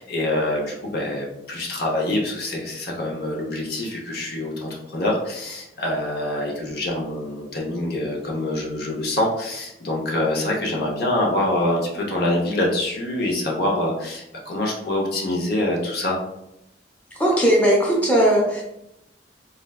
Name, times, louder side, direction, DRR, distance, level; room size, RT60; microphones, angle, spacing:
voice 1, 0.0-16.1, left 1 dB, 60° left, -1 dB, 0.7 m, -25 dB
voice 2, 17.1-18.6, right 1 dB, 10° left, -3 dB, 0.6 m, -18 dB
3.8 x 2.2 x 2.3 m, 0.85 s
head